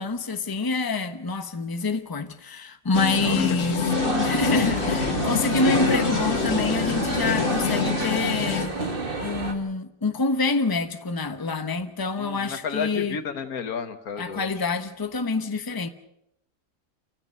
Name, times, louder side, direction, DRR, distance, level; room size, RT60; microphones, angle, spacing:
voice 1, 0.0-3.9 4.2-8.7 9.2-13.2 14.2-15.9, left 3 dB, 15° left, 1.0 m, -26 dB
sound 1, 2.9-8.7, left 6 dB, 60° left, 2.0 m, -26 dB
voice 2, 3.2-3.6 5.6-6.1 12.2-14.7, left 6 dB, 85° left, 1.8 m, -31 dB
sound 2, 3.9-9.5, right 2 dB, 40° right, 2.2 m, -29 dB
29.0 x 15.0 x 6.6 m
omnidirectional pair, 1.5 m